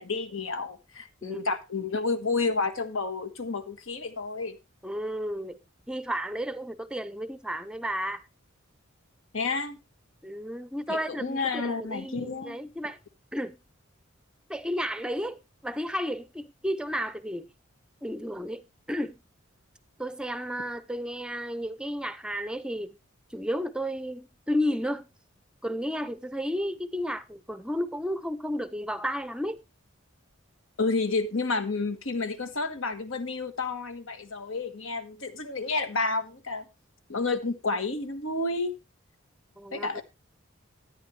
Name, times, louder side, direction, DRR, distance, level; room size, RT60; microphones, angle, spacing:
voice 1, 0.0-4.6 9.3-9.8 10.9-12.6 30.8-36.6 37.1-38.7 39.7-40.0, left 3 dB, 75° left, 1.5 m, -30 dB
voice 2, 4.8-5.6 5.9-8.2 10.2-13.0 13.3-13.6 14.5-17.5 18.0-19.2 20.0-23.0 23.3-25.1 25.6-29.6 39.6-40.0, equal, 5° right, 0.6 m, -32 dB
14.0 x 9.1 x 3.3 m
head